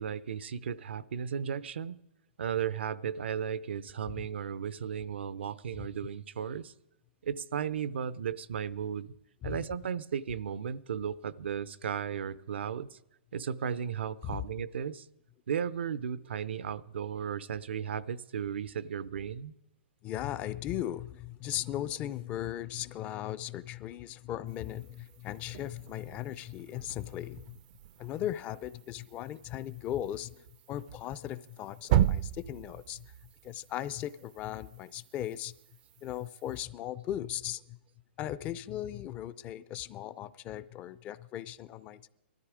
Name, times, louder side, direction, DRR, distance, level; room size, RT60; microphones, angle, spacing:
voice 1, 0.0-2.0 2.4-6.7 7.2-9.1 9.4-13.0 13.3-15.1 15.5-19.5, right 8 dB, 80° right, 17 dB, 0.7 m, -35 dB
voice 2, 20.0-27.6 28.0-33.1 33.4-35.5 36.0-37.8 38.2-42.1, left 12 dB, 25° left, 16 dB, 0.5 m, -38 dB
sound 1, 24.5-36.6, right 11 dB, 40° right, 0.5 m, -37 dB
19.0 x 13.5 x 4.9 m, 0.89 s
hypercardioid pair, 150°, 6 cm